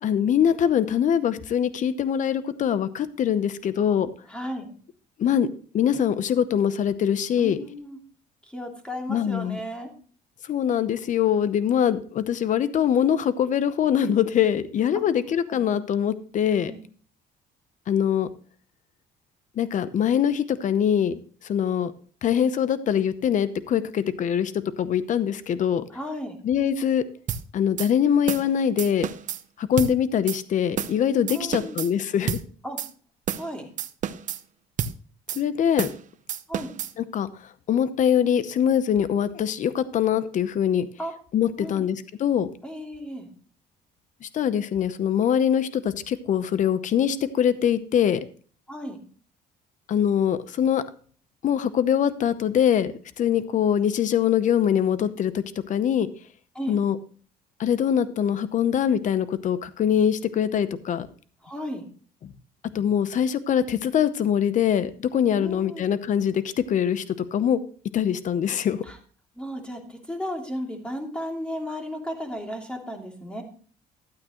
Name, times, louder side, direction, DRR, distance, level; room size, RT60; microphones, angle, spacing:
voice 1, 0.0-4.1 5.2-5.5 5.7-7.6 9.1-9.6 10.5-16.7 17.9-18.3 19.6-21.9 22.2-25.9 26.4-27.0 27.5-29.1 29.6-32.4 35.3-35.9 37.0-37.3 37.7-40.9 41.3-42.5 44.2-48.3 49.9-50.8 51.4-56.1 56.7-57.0 57.6-61.1 62.7-67.6 67.9-68.8, left 9 dB, 50° left, 14 dB, 0.8 m, -23 dB
voice 2, 4.3-4.7 7.4-8.0 8.4-9.9 14.9-15.1 15.5-15.6 16.7-16.8 25.9-26.4 31.3-31.8 32.6-32.8 33.3-33.7 36.5-36.7 41.0-41.1 41.6-41.9 42.6-43.3 48.7-49.0 56.5-56.7 61.4-61.8 65.4-65.9 68.8-69.0 69.3-73.4, equal, 5° left, 2 dB, 2.7 m, -34 dB
sound 1, 27.3-27.4 27.8-27.9 28.3-28.5 28.8-29.4 29.8-29.9 30.3-30.4 30.8-31.0 31.3-31.9 32.3-32.4 32.8-32.9 33.3-33.5 33.8-34.4 34.8-35.0 35.3-35.4 35.8-36.0 36.3-36.9, right 9 dB, 50° right, 0.7 m, -29 dB
12.5 x 8.6 x 3.0 m, 0.42 s
cardioid pair, 110°, 17 cm